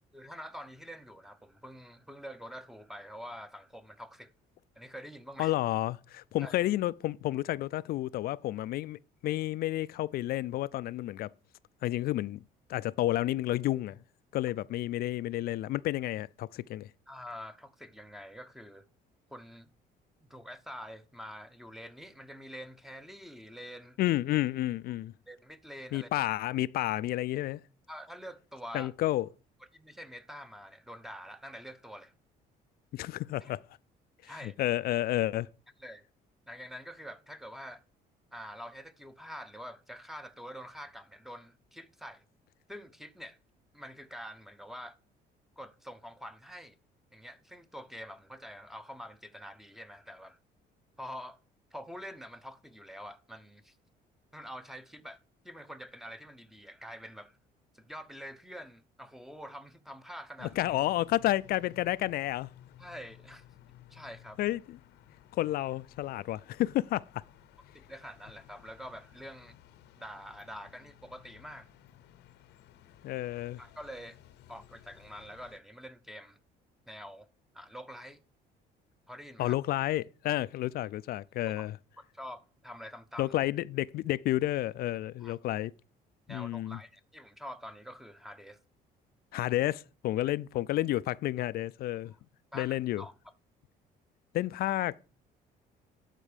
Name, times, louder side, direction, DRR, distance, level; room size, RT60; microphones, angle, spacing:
voice 1, 0.1-4.3 4.8-5.5 6.4-6.6 17.1-18.9 19.3-19.7 20.3-24.0 25.3-26.1 27.9-28.9 29.7-32.1 33.4-33.5 34.2-34.6 35.8-36.0 36.5-37.8 38.3-42.2 42.7-43.4 43.7-45.0 45.6-46.8 47.1-50.4 51.0-51.4 51.7-53.7 54.3-57.4 57.7-60.6 62.8-63.5 63.9-64.4 67.7-69.6 70.0-71.7 73.6-74.2 74.5-76.4 76.9-77.3 77.5-78.2 79.1-79.5 81.6-81.7 82.1-83.3 85.2-85.4 86.3-88.6 90.2-90.3 92.5-93.1, equal, ahead, 0.8 m, -46 dB
voice 2, 5.4-11.3 11.8-12.4 12.7-14.0 14.3-16.9 24.0-25.1 25.9-27.6 28.7-29.3 32.9-33.6 34.2-35.5 60.6-62.5 64.4-64.8 65.3-67.1 73.0-73.6 79.4-81.8 83.2-85.7 86.3-86.8 89.3-92.1 92.5-93.0 94.3-95.0, left 15 dB, 65° left, 0.4 m, -31 dB
sound 1, 60.4-75.6, left 11 dB, 85° left, 0.8 m, -57 dB
11.5 x 4.6 x 5.0 m
cardioid pair, 110°, 17 cm